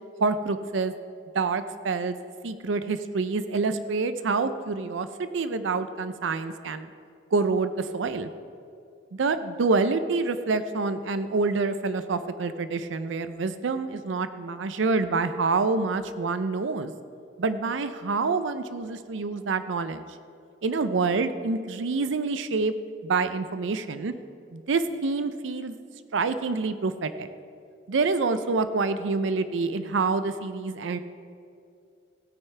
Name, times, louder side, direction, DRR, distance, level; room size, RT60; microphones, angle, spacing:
voice 1, 0.2-0.9 1.3-2.2 2.4-6.9 7.3-8.3 9.1-16.9 17.4-20.0 20.6-22.7 23.0-24.1 24.5-25.7 26.1-27.3 27.9-31.0, right 4 dB, 90° right, 11 dB, 0.5 m, -27 dB
16.5 x 9.2 x 3.3 m, 2.5 s
head